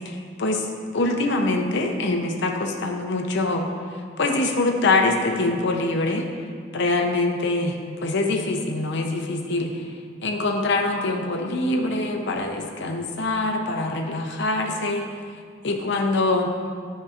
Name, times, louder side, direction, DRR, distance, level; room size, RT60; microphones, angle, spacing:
voice 1, 0.9-3.7 4.2-6.3 6.7-7.7 8.0-9.7 10.2-15.0 15.6-16.5, left 2 dB, 65° left, 4 dB, 0.7 m, -24 dB
9.3 x 5.5 x 2.5 m, 2.1 s
head